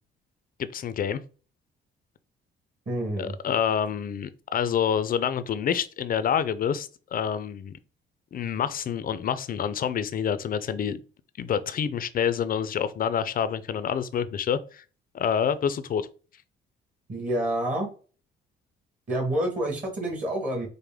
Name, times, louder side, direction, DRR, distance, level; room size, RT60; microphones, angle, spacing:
voice 1, 0.6-1.2 3.2-7.8 8.3-11.0 11.4-14.8 15.1-16.1, left 8 dB, 45° left, 0.5 m, -27 dB
voice 2, 2.9-3.3 17.1-17.9 19.1-20.7, right 1 dB, 40° right, 1.6 m, -28 dB
4.9 x 2.1 x 3.5 m
cardioid pair, 90°, 20 cm